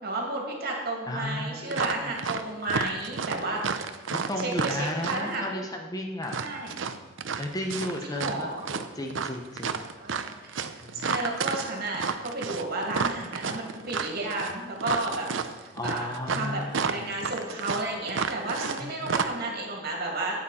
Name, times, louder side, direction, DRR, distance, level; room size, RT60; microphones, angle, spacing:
voice 1, 0.0-5.5 6.4-6.8 8.0-8.6 10.0-15.3 15.5-20.4, right 2 dB, 50° right, -1 dB, 2.6 m, -32 dB
voice 2, 1.1-2.1 4.1-6.4 7.4-9.9 10.8-11.1 15.7-17.1 18.8-19.1, left 1 dB, 20° left, 3 dB, 0.9 m, -34 dB
sound 1, 1.7-2.4 2.7-5.4 6.2-8.4 8.7-18.8 19.1-19.3, right 5 dB, 70° right, 0.6 m, -31 dB
13.0 x 8.9 x 4.3 m, 1.3 s
head